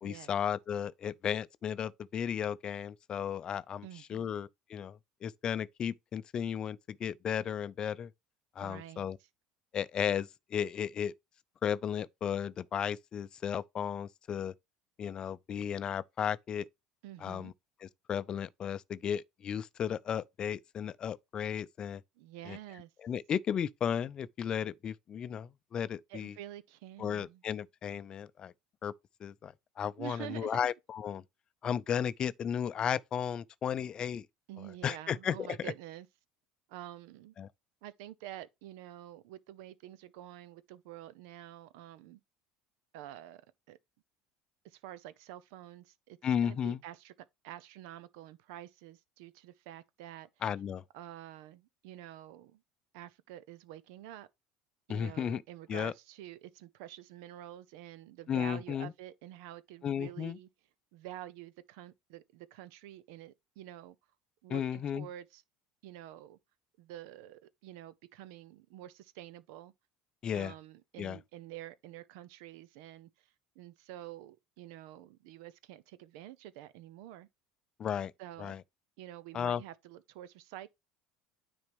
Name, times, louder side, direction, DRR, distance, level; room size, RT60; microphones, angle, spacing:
voice 1, 0.0-8.1 8.6-9.2 9.7-11.1 11.6-14.5 15.0-16.7 17.2-17.5 17.8-22.0 22.5-22.6 23.0-26.3 27.0-28.5 28.8-28.9 29.2-31.2 31.6-34.3 34.8-35.7 37.4-37.5 46.2-46.8 50.4-50.8 54.9-55.4 55.7-55.9 58.3-58.9 59.8-60.4 64.5-65.1 70.2-70.5 71.0-71.2 77.8-78.1 78.4-78.6 79.3-79.6, left 8 dB, 40° left, 0.5 m, -34 dB
voice 2, 3.8-4.3 8.6-9.1 17.0-17.5 22.2-22.9 26.1-27.4 30.0-30.7 34.5-36.1 36.7-37.3 37.8-42.2 42.9-43.4 43.7-43.8 44.6-47.1 47.4-50.3 50.9-52.6 52.9-54.3 54.9-60.5 60.9-64.0 64.4-65.4 65.8-66.4 66.8-69.7 70.3-73.3 73.6-77.3 78.2-78.6 79.0-80.7, right 13 dB, 70° right, 0.6 m, -48 dB
9.6 x 4.3 x 3.4 m
hypercardioid pair, 75°, 2 cm